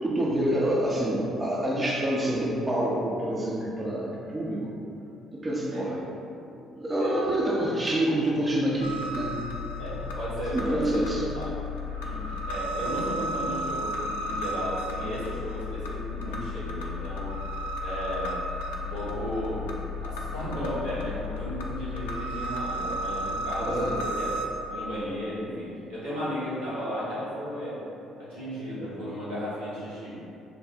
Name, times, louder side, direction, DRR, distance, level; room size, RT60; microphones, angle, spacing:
voice 1, 0.0-4.6 5.3-6.0 6.6-9.4 10.5-11.2 23.6-24.0, right 1 dB, 25° right, -4 dB, 0.6 m, -27 dB
sound 1, 8.8-24.5, left 1 dB, 70° left, 0.3 m, -33 dB
voice 2, 9.8-11.5 12.0-17.3 17.8-18.3 18.7-19.7 20.0-24.3 24.7-27.8 28.2-30.2, equal, 90° right, -15 dB, 1.3 m, -34 dB
3.7 x 2.1 x 4.0 m, 2.7 s
figure-of-eight pair, 45°, 0 cm